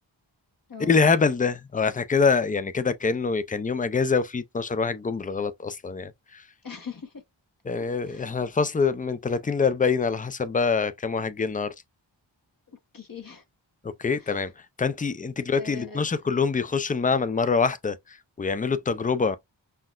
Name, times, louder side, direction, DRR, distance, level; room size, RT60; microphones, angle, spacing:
voice 1, 0.8-6.5 7.6-11.7 13.8-19.4, left 5 dB, 20° left, 0.3 m, -25 dB
voice 2, 6.6-7.2 8.1-8.3 12.9-13.4 14.2-14.3 15.5-16.0, left 5 dB, 45° left, 0.9 m, -40 dB
5.7 x 2.1 x 2.3 m
wide cardioid pair, 50°, 47 cm